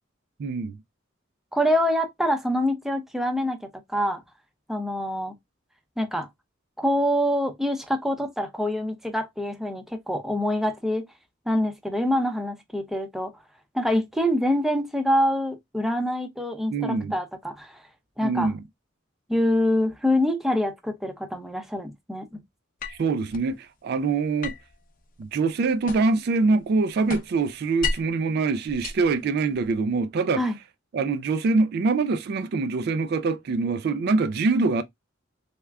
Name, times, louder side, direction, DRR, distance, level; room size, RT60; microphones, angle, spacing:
voice 1, 0.4-0.8 16.7-17.2 18.2-18.6 22.9-24.5 25.2-30.4 30.9-34.8, right 3 dB, 55° right, 0.3 m, -24 dB
voice 2, 1.5-3.6 3.9-4.2 4.7-5.3 6.0-6.3 6.8-11.0 11.5-13.3 13.7-17.8 18.2-18.5 19.3-22.4 30.4-30.5, equal, ahead, 0.5 m, -25 dB
sound 1, 22.8-23.5 24.4-26.3 26.6-28.2 28.7-29.8, left 4 dB, 45° left, 0.6 m, -34 dB
3.4 x 2.1 x 3.4 m
head